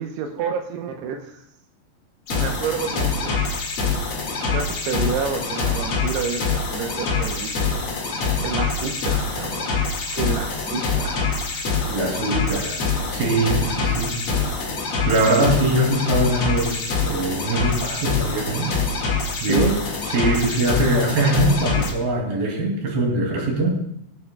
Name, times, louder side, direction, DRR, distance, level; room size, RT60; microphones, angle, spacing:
voice 1, 0.0-1.4 2.3-3.6 4.5-7.9 8.4-9.8 10.2-11.8 19.4-19.8, right 6 dB, 80° right, 3 dB, 2.5 m, -29 dB
sound 1, 2.3-21.9, left 4 dB, 50° left, 1.6 m, -25 dB
voice 2, 11.9-12.8 13.1-14.2 15.1-18.8 19.4-19.7 20.1-23.8, right 2 dB, 55° right, -1 dB, 4.1 m, -22 dB
24.0 x 8.6 x 2.2 m, 0.72 s
omnidirectional pair, 5.4 m